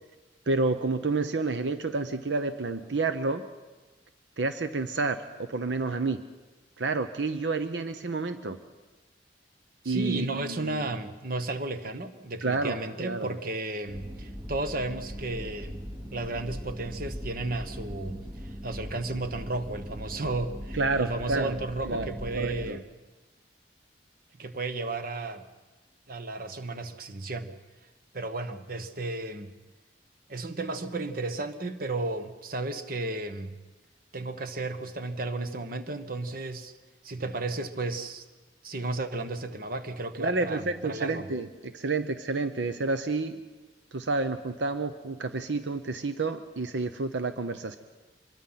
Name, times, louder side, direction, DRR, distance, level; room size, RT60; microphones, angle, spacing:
voice 1, 0.5-3.5 4.4-6.2 6.8-8.6 9.8-10.9 12.4-13.3 20.7-21.6 21.8-22.1 22.3-22.8 40.2-43.4 43.9-47.8, right 3 dB, 80° right, 10 dB, 0.8 m, -29 dB
voice 2, 9.8-15.8 16.1-22.8 24.4-25.4 26.1-27.5 28.1-29.5 30.3-33.5 34.1-36.7 37.0-38.2 38.6-41.3, right 2 dB, 55° right, 9 dB, 1.2 m, -33 dB
sound 1, 13.9-22.7, equal, 15° right, 0.9 m, -40 dB
25.0 x 22.0 x 5.8 m, 1.2 s
head